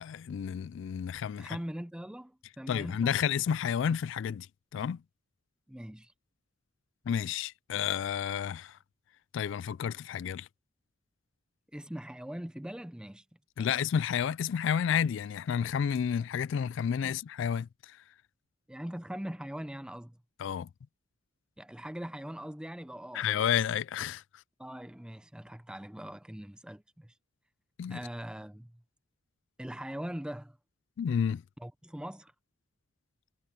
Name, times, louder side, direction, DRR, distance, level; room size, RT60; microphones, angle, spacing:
voice 1, 0.0-1.6 2.7-4.5 4.7-5.0 7.1-8.8 9.3-10.5 13.6-18.0 20.4-20.7 23.1-24.2 27.8-28.0 31.0-31.4, left 8 dB, 65° left, 0.3 m, -31 dB
voice 2, 1.4-3.2 5.7-6.1 11.7-13.2 13.6-13.7 17.0-17.2 18.7-20.2 21.6-23.4 24.6-27.1 27.9-28.8 29.6-30.6 31.6-32.3, equal, 5° right, 0.5 m, -41 dB
head